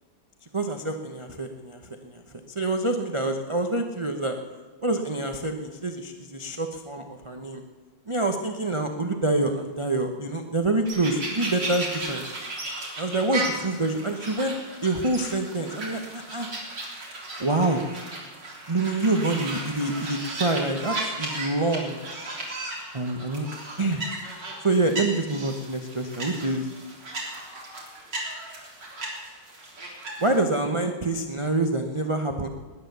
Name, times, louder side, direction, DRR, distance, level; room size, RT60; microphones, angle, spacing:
voice 1, 0.5-2.2 2.5-4.4 4.8-7.6 8.1-12.3 13.0-14.5 14.8-16.5 17.4-17.8 18.7-22.0 22.9-23.5 23.8-24.0 24.6-26.7 30.2-32.5, right 2 dB, 30° right, 4 dB, 0.5 m, -26 dB
sound 1, 10.8-30.4, right 2 dB, 60° right, 4.2 m, -35 dB
20.0 x 10.5 x 6.8 m, 1.4 s
omnidirectional pair, 2.2 m